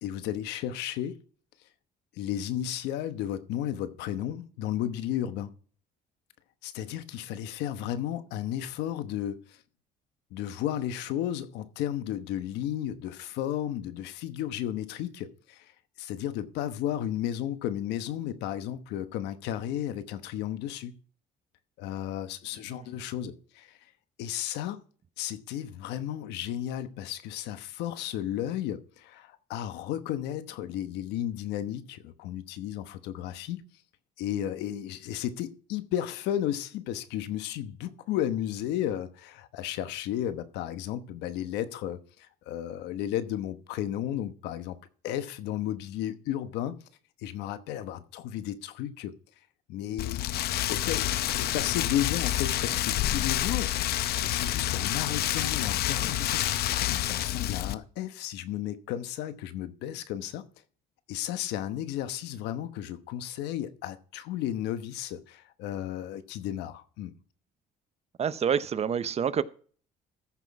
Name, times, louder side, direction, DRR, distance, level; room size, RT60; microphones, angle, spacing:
voice 1, 0.0-1.2 2.1-5.5 6.6-9.6 10.3-15.7 16.0-20.9 21.8-23.8 24.2-24.8 25.2-33.6 34.2-44.8 45.0-46.8 47.2-49.1 49.7-50.3 50.7-60.4 61.1-67.1, left 11 dB, 90° left, 1.0 m, -33 dB
Rain, 50.0-57.7, left 13 dB, 70° left, 0.7 m, -28 dB
voice 2, 68.2-69.4, right 8 dB, 40° right, 0.7 m, -27 dB
14.0 x 6.2 x 4.7 m
cardioid pair, 110°, 17 cm